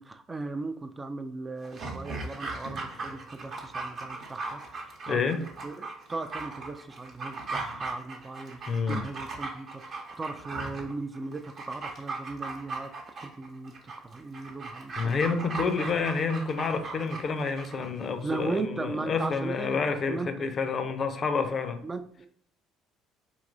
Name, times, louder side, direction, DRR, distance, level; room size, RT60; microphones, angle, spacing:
voice 1, 0.0-8.6 8.9-15.9 18.2-19.8 20.1-20.3 21.8-22.3, right 3 dB, 20° right, 8 dB, 0.3 m, -37 dB
Dog, 1.6-17.9 18.2-18.3, right 3 dB, 40° right, 0.8 m, -38 dB
voice 2, 5.1-5.4 8.7-9.0 15.0-21.8, left 5 dB, 35° left, 8 dB, 0.5 m, -29 dB
4.7 x 2.9 x 2.6 m, 0.63 s
figure-of-eight pair, 55°, 0 cm